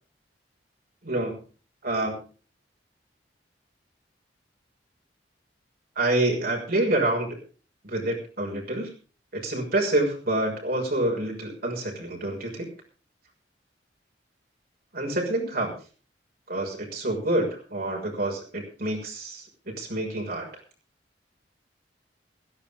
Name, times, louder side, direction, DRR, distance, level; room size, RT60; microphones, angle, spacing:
voice 1, 1.0-1.4 1.8-2.2 6.0-7.4 7.8-8.9 9.3-12.7 14.9-15.7 16.5-20.5, right 1 dB, 55° right, 0 dB, 6.1 m, -27 dB
17.0 x 14.5 x 3.6 m, 0.38 s
head